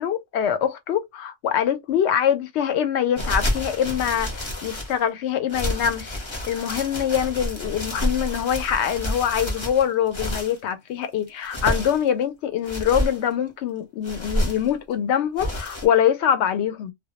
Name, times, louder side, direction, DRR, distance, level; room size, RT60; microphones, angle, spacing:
voice 1, 0.0-6.2 6.5-16.9, left 9 dB, 70° left, 0.8 m, -24 dB
sound 1, 3.2-5.0 5.5-10.6 11.3-12.1 12.6-13.2 14.0-14.7 15.4-15.9, left 1 dB, 30° left, 0.6 m, -29 dB
2.2 x 2.1 x 2.8 m
omnidirectional pair, 1.3 m